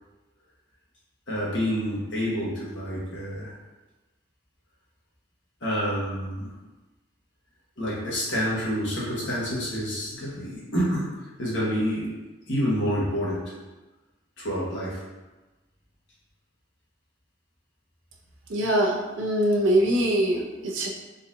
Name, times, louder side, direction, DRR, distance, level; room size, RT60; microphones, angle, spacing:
voice 1, 1.3-3.5 5.6-6.5 7.8-12.1 12.5-13.4 14.4-15.0 20.2-20.6, equal, 70° left, -6 dB, 1.2 m, -28 dB
voice 2, 18.5-20.9, right 1 dB, 75° right, 0 dB, 0.6 m, -23 dB
4.0 x 2.6 x 2.6 m, 1.2 s
head